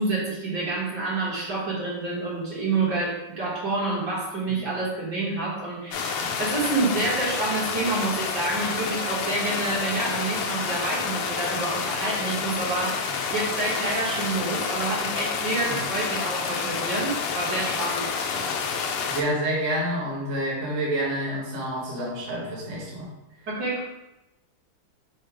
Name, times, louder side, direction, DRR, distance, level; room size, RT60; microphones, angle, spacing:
voice 1, 0.0-18.1 23.5-23.8, right 2 dB, 55° right, -6 dB, 1.7 m, -28 dB
sound 1, 5.9-19.2, left 5 dB, 85° left, 1.5 m, -29 dB
voice 2, 19.1-23.1, right 1 dB, 40° right, -6 dB, 1.2 m, -28 dB
5.0 x 2.2 x 4.6 m, 0.97 s
omnidirectional pair, 2.4 m